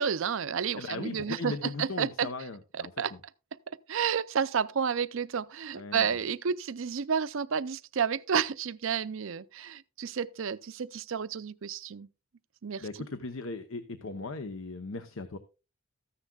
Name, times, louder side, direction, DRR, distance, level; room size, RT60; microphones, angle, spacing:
voice 1, 0.0-2.3 2.7-3.1 3.7-12.1 12.6-12.8, right 7 dB, 60° right, 0.5 m, -31 dB
voice 2, 0.8-2.9 5.7-6.1 12.8-15.4, left 3 dB, 70° left, 0.8 m, -38 dB
14.0 x 9.8 x 2.3 m
head